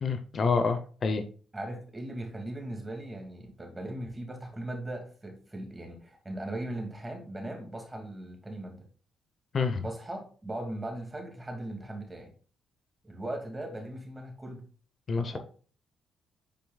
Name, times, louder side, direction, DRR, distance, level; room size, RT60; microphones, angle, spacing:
voice 1, 0.0-1.2 9.5-9.8 15.1-15.4, left 4 dB, 45° left, 8 dB, 0.8 m, -27 dB
voice 2, 1.5-8.8 9.8-12.3 13.0-14.6 15.3-15.4, right 1 dB, 15° right, 2 dB, 2.2 m, -39 dB
9.0 x 4.5 x 2.3 m, 0.40 s
cardioid pair, 90°, 0 cm